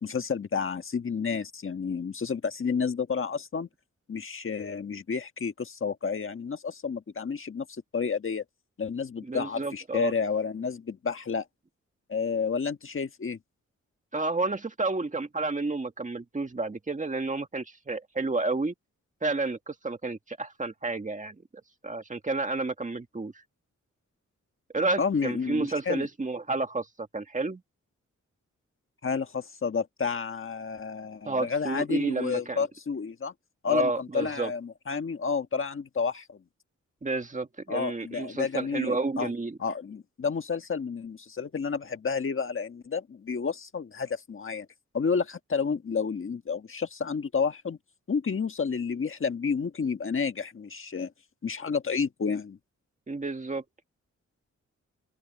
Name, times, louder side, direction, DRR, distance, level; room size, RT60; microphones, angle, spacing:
voice 1, 0.0-3.7 4.1-7.7 7.9-8.4 8.8-11.4 12.1-13.4 25.0-26.1 29.0-33.3 33.6-36.4 37.7-39.3 39.6-44.7 44.9-47.8 48.1-51.1 51.4-52.6, left 5 dB, 45° left, 1.5 m, -30 dB
voice 2, 9.2-10.1 14.1-18.7 19.2-21.3 21.8-23.3 24.7-27.6 31.2-32.7 33.7-34.5 37.0-39.6 53.1-53.6, right 3 dB, 25° right, 1.8 m, -30 dB
open air
wide cardioid pair, 120°, 29 cm